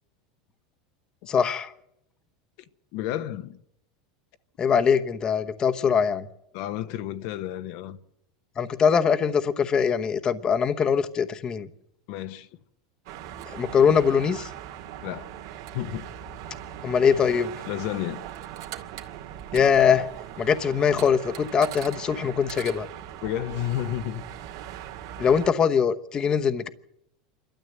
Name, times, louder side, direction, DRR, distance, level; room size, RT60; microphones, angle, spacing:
voice 1, 1.3-1.7 4.6-6.3 8.6-11.7 13.5-14.5 16.8-17.5 19.5-20.1 20.4-22.9 25.2-26.7, left 7 dB, 30° left, 1.0 m, -22 dB
voice 2, 2.9-3.6 6.5-8.0 12.1-12.5 15.0-15.3 15.7-16.1 17.7-18.2 23.2-24.2, left 12 dB, 65° left, 1.0 m, -31 dB
sound 1, 13.1-25.5, right 11 dB, 75° right, 2.2 m, -39 dB
27.5 x 12.5 x 7.9 m
supercardioid pair, 115°, 3 cm